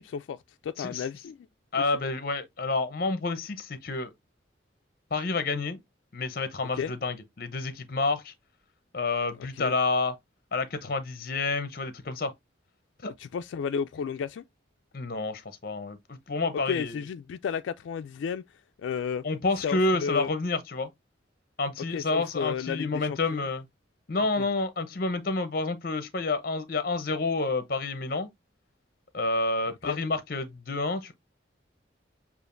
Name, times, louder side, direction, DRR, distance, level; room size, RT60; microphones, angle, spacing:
voice 1, 0.0-1.4 6.8-6.9 9.5-9.8 13.2-14.4 16.7-18.4 18.8-19.2 19.6-20.3 21.9-23.4 24.4-24.5 29.9-30.0, left 6 dB, 80° left, 0.3 m, -32 dB
voice 2, 1.7-4.1 5.1-5.8 6.1-8.3 8.9-10.2 10.5-12.3 13.0-13.1 14.9-17.0 19.2-20.9 21.6-23.7 24.1-28.3 29.1-31.1, left 3 dB, 50° left, 0.7 m, -29 dB
6.9 x 2.5 x 2.5 m
head